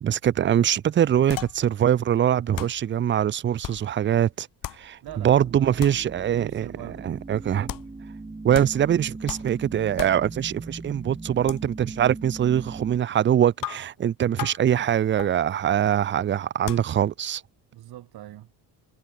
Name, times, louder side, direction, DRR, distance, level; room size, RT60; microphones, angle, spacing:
voice 1, 0.0-4.5 4.8-6.7 7.0-7.7 8.4-17.4, right 10 dB, 30° right, 0.5 m, -23 dB
sound 1, 1.3-1.8 2.2-2.3 2.6-2.9 3.6-4.0 4.6-5.0 5.8-6.2 7.7-8.0 8.5-8.9 9.3-9.6 10.0-10.3 11.5-11.6 13.6-14.0 14.4-14.6 15.2-15.4 16.7-17.0, left 13 dB, 50° left, 1.2 m, -36 dB
voice 2, 5.0-5.9 6.3-7.2 12.9-13.2 17.7-18.5, right 14 dB, 60° right, 3.7 m, -42 dB
sound 2, 5.1-13.0, right 3 dB, 10° right, 3.9 m, -40 dB
cardioid pair, 125°, 41 cm